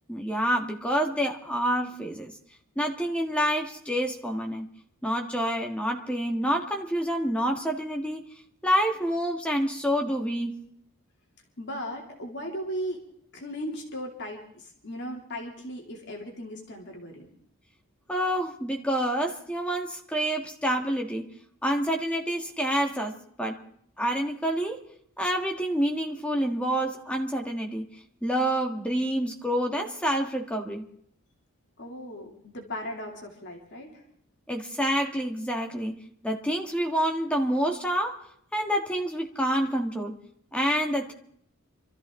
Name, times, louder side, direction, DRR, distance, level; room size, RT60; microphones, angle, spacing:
voice 1, 0.1-2.3 2.8-4.7 5.0-8.3 8.6-10.6 18.1-21.3 21.6-23.6 24.0-24.8 25.2-27.9 28.2-30.9 34.5-38.2 38.5-40.2 40.5-41.1, equal, 5° left, 2 dB, 1.6 m, -28 dB
voice 2, 11.6-13.0 13.3-17.3 31.8-34.0, equal, 50° left, 1 dB, 2.8 m, -37 dB
26.0 x 13.5 x 3.8 m, 0.65 s
head